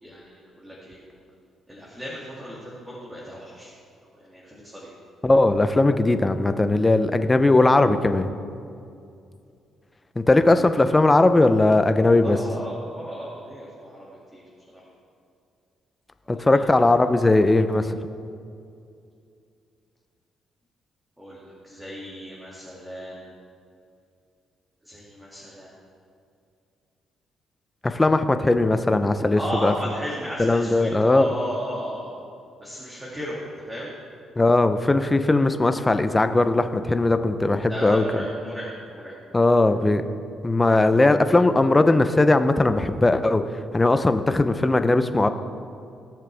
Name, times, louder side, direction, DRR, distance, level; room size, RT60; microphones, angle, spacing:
voice 1, 0.0-1.0 1.7-3.7 4.1-4.9 12.2-14.1 14.3-14.4 14.7-14.8 16.3-16.7 21.2-23.3 24.8-25.7 29.3-32.2 32.6-33.9 37.7-39.5, equal, 10° right, -6 dB, 2.3 m, -35 dB
voice 2, 5.2-8.3 10.2-12.4 16.3-18.0 27.8-29.7 30.4-31.3 34.4-38.2 39.3-40.0 40.4-43.4 43.7-45.3, left 2 dB, 20° left, 9 dB, 0.6 m, -19 dB
18.0 x 6.6 x 3.4 m, 2.4 s
cardioid pair, 90°, 0 cm